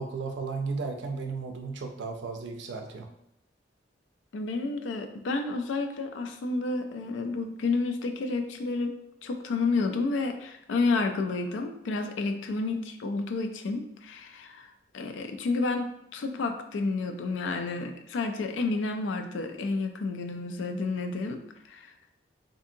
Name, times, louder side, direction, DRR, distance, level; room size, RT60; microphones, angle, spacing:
voice 1, 0.0-3.1, right 4 dB, 70° right, 4 dB, 0.4 m, -34 dB
voice 2, 4.3-8.9 9.2-21.4 21.7-21.9, left 3 dB, 80° left, 6 dB, 0.4 m, -30 dB
2.6 x 2.6 x 2.6 m, 0.76 s
head